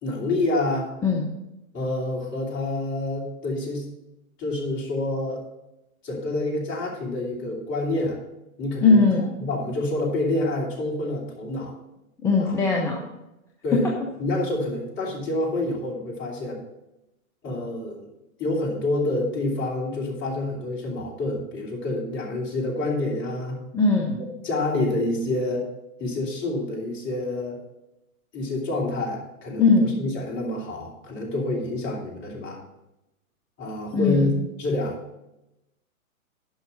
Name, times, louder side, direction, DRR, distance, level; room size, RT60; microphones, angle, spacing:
voice 1, 0.0-0.9 1.7-3.9 4.4-5.4 6.0-8.2 8.6-9.0 9.4-11.7 12.4-12.5 13.6-13.9 14.2-16.6 17.4-18.1 18.4-23.6 24.4-25.7 26.0-27.6 28.3-32.6 33.6-35.0, left 2 dB, 25° left, -2 dB, 2.9 m, -27 dB
voice 2, 8.8-9.3 12.2-13.0 13.7-13.8 23.7-24.1 29.6-29.9 33.9-34.4, left 4 dB, 5° left, -1 dB, 0.6 m, -19 dB
11.0 x 5.7 x 5.6 m, 0.91 s
hypercardioid pair, 125°, 43 cm